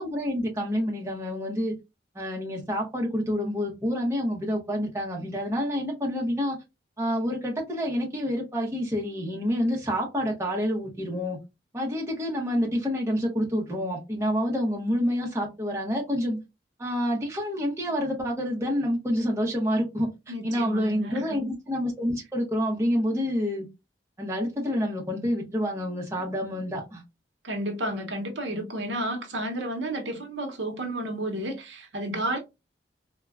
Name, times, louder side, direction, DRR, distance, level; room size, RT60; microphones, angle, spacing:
voice 1, 0.0-1.7 2.1-6.6 7.0-11.4 11.7-16.4 16.8-20.1 20.4-23.7 24.2-27.0, equal, 15° right, 0.8 m, -28 dB
voice 2, 20.3-21.4 27.4-32.4, right 1 dB, 85° right, 0.8 m, -31 dB
3.5 x 2.2 x 2.3 m
head